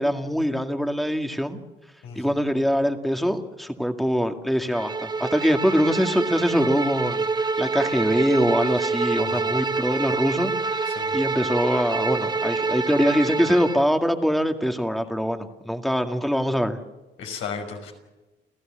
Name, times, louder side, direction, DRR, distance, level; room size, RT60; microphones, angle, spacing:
voice 1, 0.0-1.6 2.2-7.3 7.6-16.8, equal, ahead, 5 dB, 2.1 m, -23 dB
Bowed string instrument, 4.7-13.8, right 4 dB, 20° right, 0.8 m, -26 dB
voice 2, 17.2-17.9, left 6 dB, 80° left, 3 dB, 5.7 m, -34 dB
29.5 x 14.5 x 7.7 m, 1.1 s
cardioid pair, 90°, 20 cm